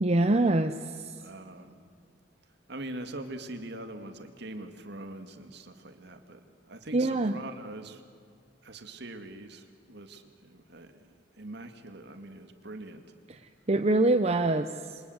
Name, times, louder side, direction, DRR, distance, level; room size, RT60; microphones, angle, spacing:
voice 1, 0.0-0.7 6.9-7.3 13.7-14.7, right 2 dB, 35° right, 7 dB, 0.8 m, -23 dB
voice 2, 1.2-1.7 2.7-6.4 6.7-8.0 8.6-11.1 11.4-13.0, right 2 dB, 60° right, 7 dB, 2.3 m, -43 dB
27.5 x 25.5 x 8.1 m, 2.3 s
head